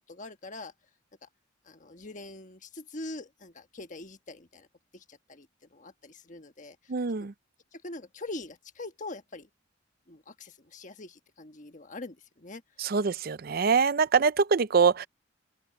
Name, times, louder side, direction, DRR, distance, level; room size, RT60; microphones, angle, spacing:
voice 1, 0.1-0.7 1.2-1.3 1.7-4.7 4.9-6.8 7.7-9.5 10.1-13.0, left 2 dB, 40° left, 1.4 m, -43 dB
voice 2, 6.9-7.3 12.8-15.1, right 5 dB, 50° right, 0.5 m, -24 dB
open air
head